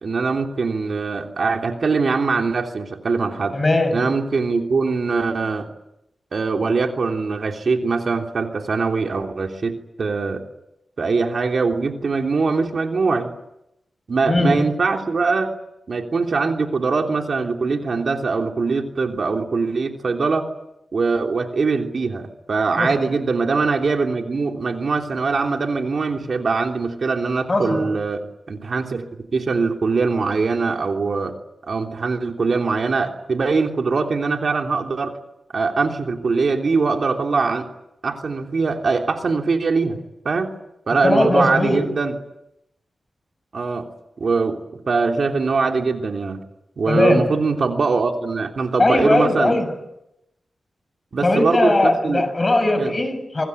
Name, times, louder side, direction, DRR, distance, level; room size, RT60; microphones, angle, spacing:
voice 1, 0.0-3.6 3.9-5.7 6.3-10.4 11.0-13.3 14.1-15.5 15.9-20.4 20.9-28.2 28.5-29.0 29.3-31.3 31.7-35.1 35.5-37.7 38.0-40.0 40.2-40.5 40.9-42.1 43.5-43.9 44.2-44.6 44.9-46.4 46.8-49.5 51.1-52.2 52.8-52.9, right 4 dB, 60° right, 3 dB, 3.3 m, -22 dB
voice 2, 3.5-4.1 14.3-14.7 22.8-22.9 27.5-27.9 41.0-41.9 46.9-47.3 48.8-49.7 51.2-53.5, left 2 dB, 30° left, 9 dB, 6.7 m, -19 dB
26.0 x 21.0 x 9.7 m, 0.84 s
wide cardioid pair, 100°, 0 cm